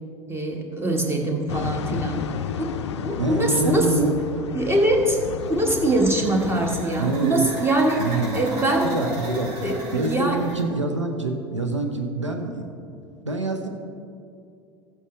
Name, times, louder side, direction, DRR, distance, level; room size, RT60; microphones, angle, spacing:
voice 1, 0.3-2.3 2.6-2.7 3.0-3.9 4.5-5.2 5.5-8.0 8.3-9.1 9.6-10.4, right 1 dB, 15° right, 2 dB, 1.3 m, -23 dB
sound 1, 1.5-6.8, left 7 dB, 70° left, 0.4 m, -32 dB
voice 2, 3.2-4.1 7.0-7.5 8.0-8.4 8.8-12.7 13.2-13.7, right 2 dB, 85° right, 4 dB, 0.8 m, -26 dB
sound 2, 5.4-10.7, equal, 45° right, 2.1 m, -38 dB
14.0 x 8.0 x 3.1 m, 2.5 s
figure-of-eight pair, 75°, 15 cm